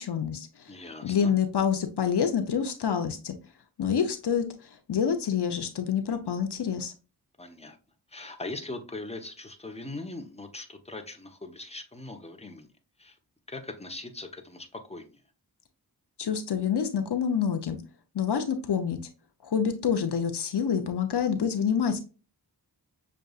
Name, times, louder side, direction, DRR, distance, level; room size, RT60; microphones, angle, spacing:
voice 1, 0.0-0.7 1.0-3.3 3.8-4.5 4.9-6.9 16.2-17.8 18.1-19.0 19.4-22.0, left 7 dB, 70° left, 0.7 m, -27 dB
voice 2, 0.7-1.3 7.4-7.8 8.1-12.7 13.0-13.2 13.5-15.2, left 2 dB, 15° left, 0.9 m, -40 dB
6.6 x 2.5 x 2.3 m
cardioid pair, 45°, 41 cm